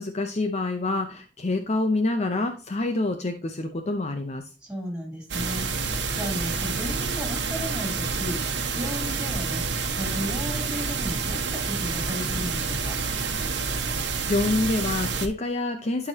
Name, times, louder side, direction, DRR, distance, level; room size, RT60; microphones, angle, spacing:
voice 1, 0.0-4.4 13.6-13.7 14.2-16.1, left 2 dB, 40° left, 6 dB, 0.7 m, -27 dB
voice 2, 4.6-13.0, equal, 5° right, 0 dB, 3.2 m, -35 dB
sound 1, 5.3-15.3, right 4 dB, 80° right, 1.2 m, -28 dB
11.5 x 4.9 x 2.8 m, 0.36 s
head